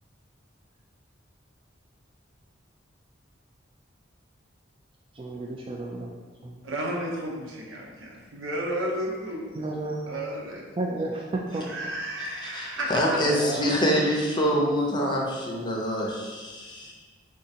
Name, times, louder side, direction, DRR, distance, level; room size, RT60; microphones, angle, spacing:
voice 1, 5.1-6.1 6.4-6.6 9.5-10.2 10.8-11.7 13.3-13.7, right 2 dB, 25° right, -2 dB, 0.3 m, -32 dB
voice 2, 6.6-9.6 10.1-10.8 11.6-13.2, right 1 dB, 90° right, -2 dB, 1.0 m, -32 dB
voice 3, 12.4-16.9, equal, 25° left, -1 dB, 0.6 m, -25 dB
4.5 x 3.7 x 2.8 m, 1.4 s
head